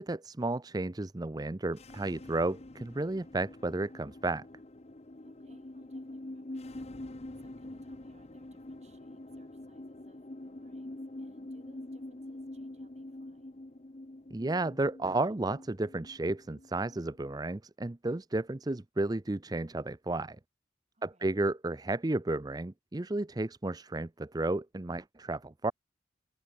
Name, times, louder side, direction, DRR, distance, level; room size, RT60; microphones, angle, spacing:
voice 1, 0.0-4.5 14.3-20.4 21.0-25.7, right 2 dB, 20° right, 0.6 m, -33 dB
sound 1, 1.7-17.2, left 1 dB, 35° left, 0.9 m, -46 dB
voice 2, 5.2-13.5 20.9-21.3, right 1 dB, 35° right, 6.4 m, -67 dB
head